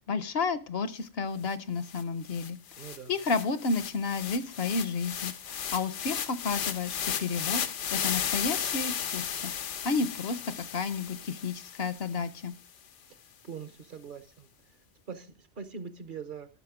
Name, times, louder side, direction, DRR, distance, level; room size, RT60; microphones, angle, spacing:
voice 1, 0.0-2.6 3.1-7.6 7.9-9.5 9.8-12.5, left 4 dB, 60° left, 14 dB, 0.9 m, -31 dB
sound 1, 1.5-1.6 1.9-12.2, left 8 dB, 85° left, 1.1 m, -35 dB
voice 2, 2.8-3.1 13.4-14.5 15.1-16.5, right 6 dB, 50° right, 11 dB, 1.0 m, -42 dB
12.5 x 6.4 x 4.8 m, 0.36 s
omnidirectional pair, 1.2 m